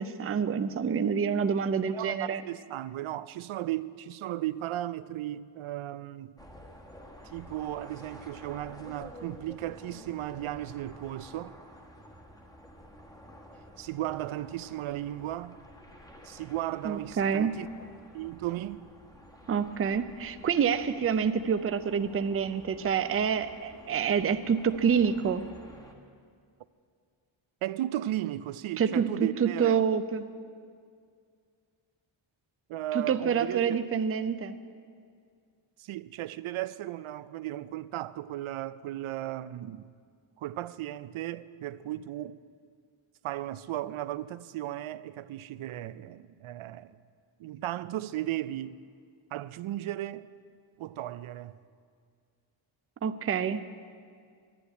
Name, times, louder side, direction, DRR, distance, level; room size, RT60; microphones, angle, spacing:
voice 1, 0.0-2.4 16.8-17.5 19.5-25.4 28.8-30.3 32.9-34.6 53.0-53.6, right 7 dB, 30° right, 0.4 m, -27 dB
voice 2, 1.9-6.3 7.2-11.6 13.8-15.6 16.2-17.7 18.1-18.9 27.6-29.8 32.7-33.8 35.8-39.9 40.4-42.4 43.2-47.0 47.4-48.8 49.3-50.3 50.8-51.6, right 14 dB, 80° right, 0.6 m, -35 dB
sound 1, 6.4-25.9, equal, 5° left, 1.3 m, -51 dB
11.5 x 11.0 x 9.7 m
wide cardioid pair, 170°, 48 cm